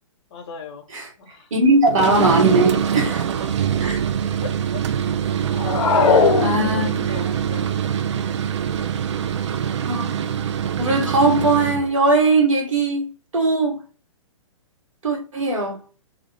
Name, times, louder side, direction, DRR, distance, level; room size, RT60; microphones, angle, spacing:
voice 1, 0.3-0.9 1.2-1.5 2.0-2.6 4.4-4.5 5.8-7.8, left 5 dB, 55° left, 0.9 m, -37 dB
voice 2, 1.5-4.0 6.4-7.2 9.3-9.4 9.8-10.2 10.8-13.8 15.0-15.8, right 2 dB, 75° right, 1.3 m, -20 dB
sound 1, 1.9-11.9, right 8 dB, 60° right, 0.4 m, -24 dB
sound 2, 5.5-7.2, left 5 dB, 70° left, 0.6 m, -18 dB
2.5 x 2.5 x 3.1 m
hypercardioid pair, 125°, 17 cm